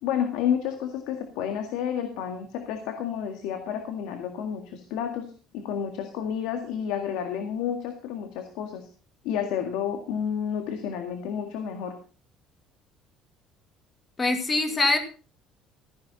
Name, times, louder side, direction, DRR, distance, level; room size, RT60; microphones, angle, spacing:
voice 1, 0.0-8.9 9.2-12.0, left 8 dB, 85° left, 5 dB, 1.9 m, -30 dB
voice 2, 14.2-15.0, left 2 dB, 20° left, 7 dB, 2.1 m, -23 dB
15.5 x 10.5 x 4.1 m, 0.37 s
cardioid pair, 160°, 0 cm